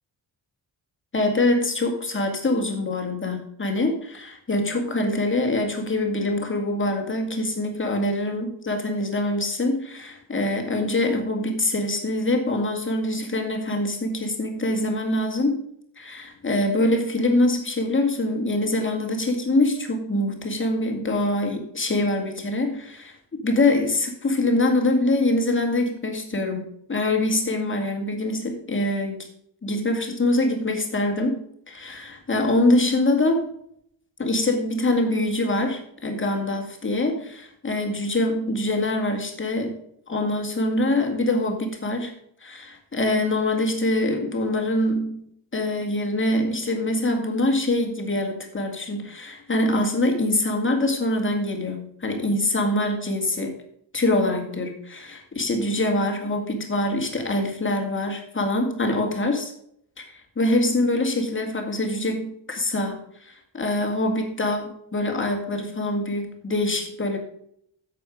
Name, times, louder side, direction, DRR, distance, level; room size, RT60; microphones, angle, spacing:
voice 1, 1.1-15.6 16.0-23.2 23.4-29.3 29.6-31.4 31.7-33.4 34.2-39.8 40.1-42.1 42.4-45.2 45.5-53.5 53.9-59.5 60.0-67.2, left 1 dB, 25° left, 3 dB, 2.2 m, -24 dB
9.2 x 7.7 x 5.0 m, 0.70 s
wide cardioid pair, 155°, 43 cm